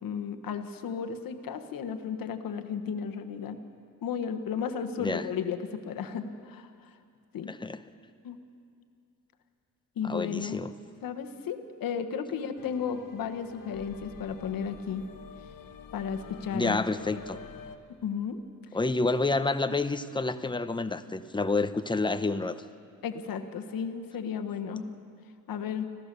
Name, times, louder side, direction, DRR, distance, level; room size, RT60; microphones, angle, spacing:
voice 1, 0.0-3.6 4.0-6.7 7.3-7.5 8.2-8.4 10.0-10.6 11.0-15.1 15.9-16.8 18.0-18.4 23.0-24.9 25.5-25.9, left 7 dB, 90° left, 7 dB, 1.3 m, -34 dB
voice 2, 7.5-7.8 10.0-10.7 16.5-17.4 18.7-22.6, left 3 dB, 15° left, 10 dB, 0.8 m, -29 dB
sound 1, 12.6-17.8, left 6 dB, 70° left, 1.2 m, -47 dB
26.0 x 15.5 x 6.8 m, 2.3 s
cardioid pair, 100°, 33 cm